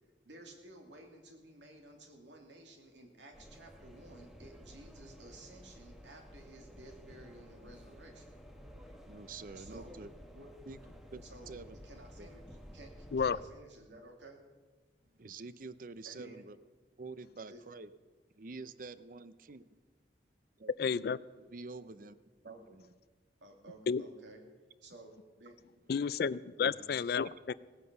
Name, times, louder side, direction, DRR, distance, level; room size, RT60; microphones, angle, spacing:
voice 1, 0.2-8.3 9.5-10.0 10.3-10.8 11.2-11.6 11.8-12.5 12.7-14.4 16.0-16.4 17.5-17.6 22.4-22.6 23.4-24.4 24.8-25.6 26.6-26.9, right 1 dB, 85° right, 3 dB, 2.6 m, -54 dB
sound 1, 3.3-13.4, equal, ahead, 1.2 m, -53 dB
voice 2, 9.1-10.1 10.7-10.8 11.1-11.8 12.2-12.3 15.1-16.6 17.0-17.9 18.4-19.7 20.6-21.1 21.5-22.2 22.4-22.8, right 3 dB, 50° right, 14 dB, 0.6 m, -47 dB
voice 3, 20.8-21.2 23.9-24.0 25.9-27.5, left 6 dB, 60° left, 18 dB, 0.4 m, -31 dB
17.5 x 9.8 x 6.7 m, 1.4 s
head